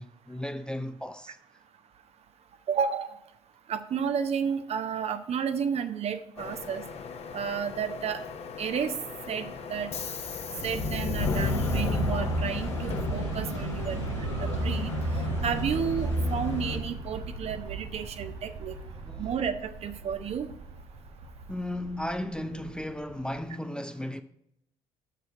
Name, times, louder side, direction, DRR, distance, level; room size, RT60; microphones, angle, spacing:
voice 1, 0.0-1.4 19.0-19.3 21.5-24.2, left 1 dB, 5° left, 0.5 m, -35 dB
voice 2, 2.7-3.1 3.7-6.8 7.3-8.2 8.6-8.9 9.3-9.9 10.6-14.9 15.4-18.7 19.2-20.5, right 7 dB, 45° right, 0.7 m, -31 dB
Subway metro underground, 6.4-13.8, left 4 dB, 45° left, 1.0 m, -34 dB
sound 1, 8.2-23.5, right 3 dB, 75° right, 1.8 m, -40 dB
sound 2, 11.2-16.8, equal, 90° left, 1.3 m, -32 dB
6.7 x 6.5 x 5.9 m
figure-of-eight pair, 50°, 15 cm